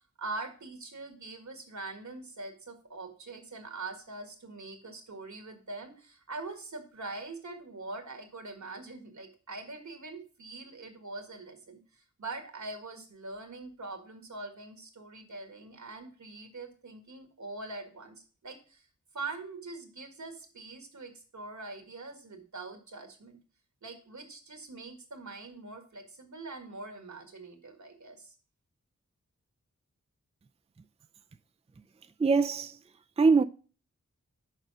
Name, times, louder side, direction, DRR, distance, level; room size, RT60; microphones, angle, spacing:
voice 1, 0.2-18.9 19.1-23.4 23.8-28.3, right 3 dB, 75° right, 1.9 m, -43 dB
voice 2, 32.2-32.7 33.2-33.4, right 4 dB, 20° right, 0.4 m, -22 dB
6.6 x 5.3 x 6.1 m
wide cardioid pair, 60°, 29 cm